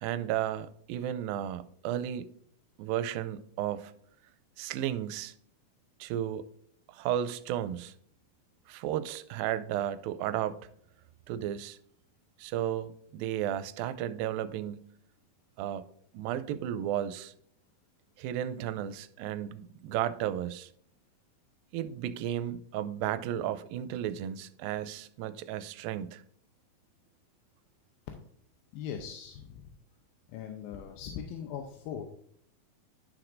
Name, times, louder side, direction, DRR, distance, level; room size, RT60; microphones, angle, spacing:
voice 1, 0.0-2.3 2.8-3.9 4.6-5.3 6.0-6.5 6.9-7.9 8.7-10.7 11.3-11.8 12.4-14.8 15.6-15.8 16.1-17.3 18.2-20.7 21.7-26.2, right 11 dB, 85° right, 2.3 m, -33 dB
voice 2, 28.7-29.7 30.3-32.0, left 8 dB, 85° left, 2.5 m, -40 dB
11.5 x 6.0 x 2.6 m
omnidirectional pair, 4.1 m